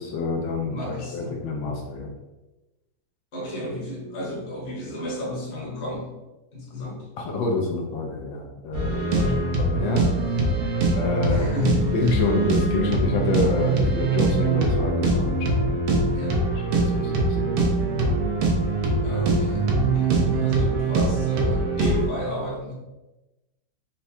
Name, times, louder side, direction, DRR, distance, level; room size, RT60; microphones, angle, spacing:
voice 1, 0.0-0.7 1.1-2.1 7.2-9.3 9.6-10.1 11.0-11.5 11.9-15.8 16.7-18.0, left 3 dB, 80° left, 0 dB, 1.3 m, -27 dB
voice 2, 0.7-1.3 1.6-1.8 3.3-6.1 6.5-7.1 9.1-9.4 11.2-11.9 16.1-16.4 19.0-22.7, left 2 dB, 45° left, -3 dB, 1.2 m, -32 dB
sound 1, 8.7-22.1, right 3 dB, 90° right, 1.6 m, -23 dB
4.6 x 2.2 x 4.1 m, 1.1 s
omnidirectional pair, 2.1 m